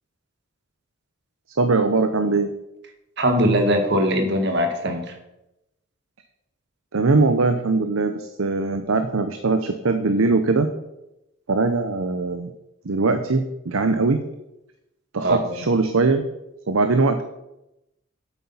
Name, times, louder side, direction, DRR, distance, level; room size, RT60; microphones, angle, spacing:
voice 1, 1.6-2.5 6.9-10.7 11.5-12.5 12.8-14.2 15.1-16.2 16.7-17.2, right 3 dB, 85° right, 8 dB, 0.8 m, -21 dB
voice 2, 3.2-5.1 15.2-15.5, equal, 55° right, 4 dB, 1.8 m, -21 dB
8.7 x 8.4 x 5.6 m, 0.89 s
head